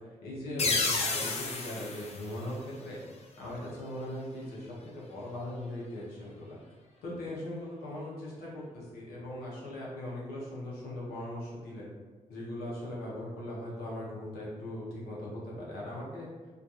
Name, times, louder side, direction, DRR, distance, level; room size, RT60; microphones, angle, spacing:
voice 1, 0.2-3.0 3.4-6.6 7.0-11.9 12.3-16.3, left 1 dB, 90° left, -5 dB, 0.7 m, -39 dB
sound 1, 0.6-3.2, left 3 dB, 45° left, 0.5 m, -32 dB
2.4 x 2.2 x 2.8 m, 1.3 s
supercardioid pair, 45°, 15 cm